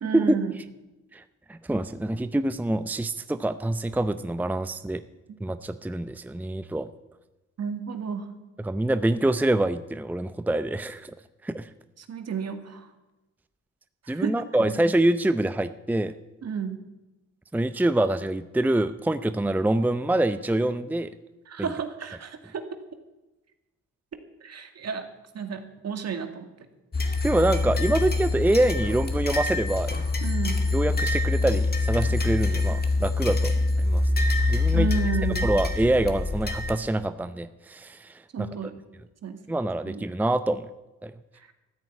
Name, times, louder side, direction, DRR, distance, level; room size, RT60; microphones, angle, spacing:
voice 1, 0.0-0.5 7.6-8.3 12.0-12.9 14.0-14.3 16.4-16.8 21.5-22.6 24.4-25.0 25.3-26.5 30.2-30.6 34.7-35.5 38.3-38.7 39.2-39.4 39.9-40.0, right 6 dB, 55° right, 7 dB, 2.2 m, -31 dB
voice 2, 1.5-5.0 5.4-6.9 8.6-11.1 11.4-11.7 14.1-16.1 17.5-21.1 21.6-21.7 27.2-29.9 30.7-34.1 34.5-34.9 35.4-38.5 39.5-40.7 41.0-41.1, right 1 dB, 5° right, 12 dB, 0.7 m, -25 dB
sound 1, 26.9-36.8, left 3 dB, 30° left, 2.2 m, -25 dB
14.0 x 9.6 x 8.5 m, 1.1 s
supercardioid pair, 60°, 30 cm